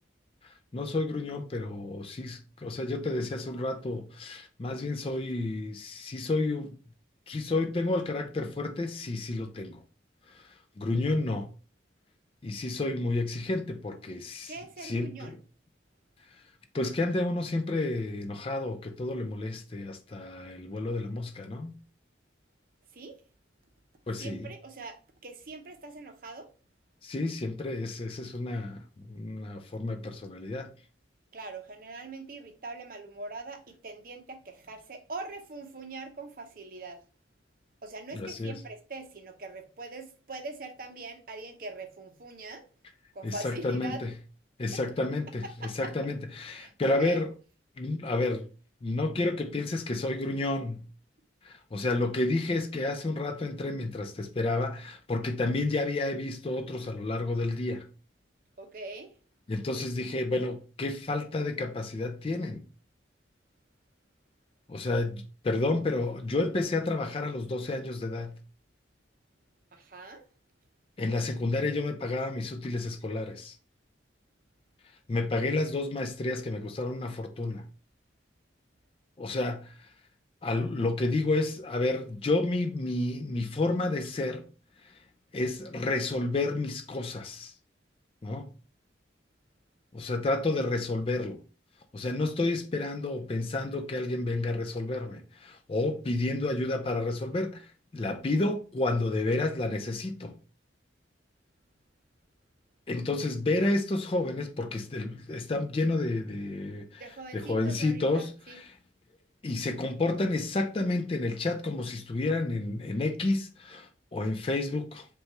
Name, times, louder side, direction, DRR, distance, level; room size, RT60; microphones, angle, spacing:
voice 1, 0.4-6.8 7.3-9.8 10.3-10.5 10.8-11.5 12.4-14.5 14.8-15.4 16.7-21.7 24.1-24.5 27.0-30.7 38.1-38.5 43.2-44.1 44.6-47.3 47.8-48.5 48.8-50.8 51.4-57.9 59.5-62.6 64.7-68.4 71.0-73.6 75.1-77.7 79.2-79.9 80.4-84.5 85.3-87.5 88.2-88.5 89.9-91.4 91.9-97.7 97.9-100.3 102.9-107.0 107.3-108.7 109.4-115.1, left 2 dB, 30° left, 0.4 m, -30 dB
voice 2, 14.5-15.4 22.9-23.2 24.2-26.5 31.3-37.0 37.8-42.7 43.1-44.0 44.7-44.8 45.6-45.9 46.5-47.2 58.6-59.1 69.7-70.3 107.0-108.6, right 3 dB, 45° right, 0.7 m, -42 dB
5.4 x 2.3 x 2.9 m
head